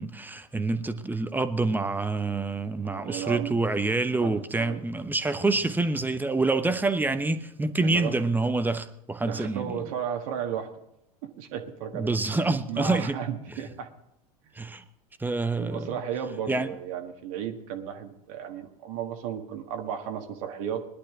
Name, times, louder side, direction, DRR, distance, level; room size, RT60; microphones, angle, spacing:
voice 1, 0.0-9.8 11.9-13.2 14.6-14.8 15.2-16.0 16.5-16.7, right 3 dB, 10° right, 0.9 m, -27 dB
voice 2, 2.8-3.5 4.2-4.8 7.8-8.1 9.2-10.7 11.2-12.3 12.7-13.9 15.6-20.9, right 8 dB, 60° right, 1.6 m, -34 dB
19.5 x 11.5 x 3.7 m
figure-of-eight pair, 85°, 20 cm